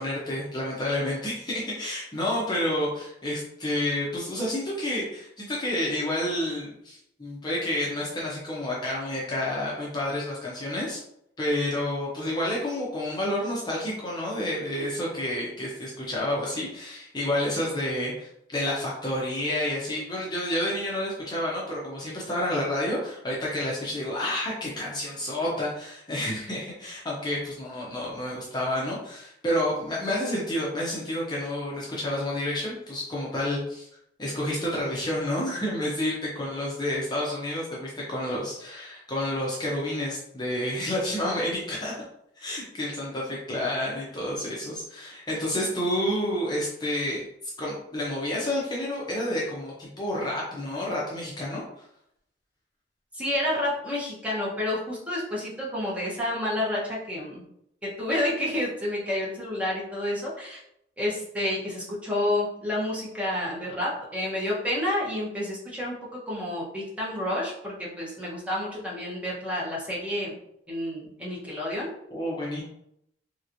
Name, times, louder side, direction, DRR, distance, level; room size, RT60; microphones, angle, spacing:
voice 1, 0.0-11.0 11.4-33.9 34.2-42.0 42.4-47.2 47.6-51.9 72.1-72.6, left 1 dB, 25° left, -4 dB, 0.6 m, -29 dB
voice 2, 53.1-57.4 57.8-60.6 61.0-70.3 70.7-71.9, left 1 dB, 10° right, -6 dB, 0.9 m, -29 dB
3.2 x 2.9 x 2.6 m, 0.75 s
head